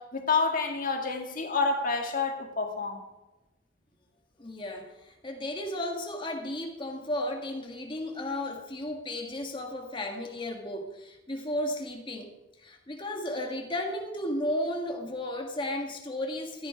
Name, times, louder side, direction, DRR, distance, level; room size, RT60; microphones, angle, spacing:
voice 1, 0.0-3.0, left 4 dB, 45° left, 1.9 m, -28 dB
voice 2, 4.4-12.3 12.6-16.7, left 1 dB, 25° left, 1.6 m, -34 dB
14.5 x 11.5 x 5.1 m
head